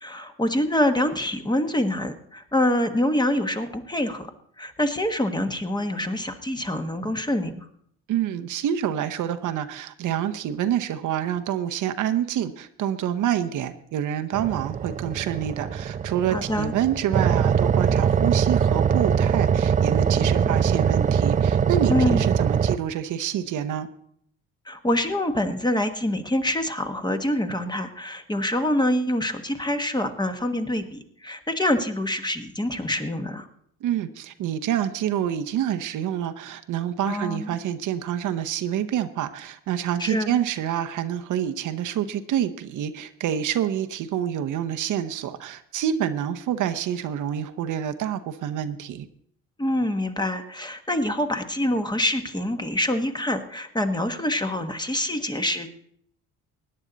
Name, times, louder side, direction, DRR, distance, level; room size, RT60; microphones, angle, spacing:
voice 1, 0.0-4.3 4.6-7.7 16.3-16.7 21.9-22.2 24.6-33.5 37.0-37.5 40.0-40.4 49.6-55.7, left 1 dB, 15° left, 7 dB, 1.2 m, -25 dB
voice 2, 8.1-23.9 33.8-49.1, right 10 dB, 65° right, 9 dB, 0.9 m, -27 dB
sound 1, 14.3-22.8, right 7 dB, 25° right, 0.4 m, -22 dB
17.0 x 9.8 x 4.0 m, 0.67 s
supercardioid pair, 80°, 33 cm